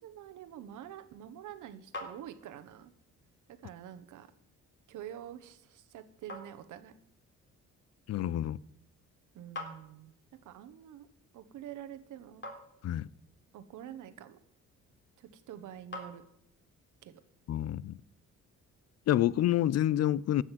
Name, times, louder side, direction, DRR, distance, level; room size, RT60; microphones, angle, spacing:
voice 1, 0.0-2.9 3.5-4.3 4.9-6.9 9.3-10.1 10.4-11.1 11.3-12.4 13.5-14.4 15.2-16.2 17.0-17.2, right 10 dB, 80° right, 1.3 m, -47 dB
sound 1, 1.6-16.8, left 2 dB, 35° left, 3.7 m, -52 dB
voice 2, 8.1-8.6 12.8-13.1 17.5-18.0 19.1-20.4, left 12 dB, 55° left, 0.5 m, -28 dB
15.5 x 6.4 x 7.6 m
cardioid pair, 90°, 30 cm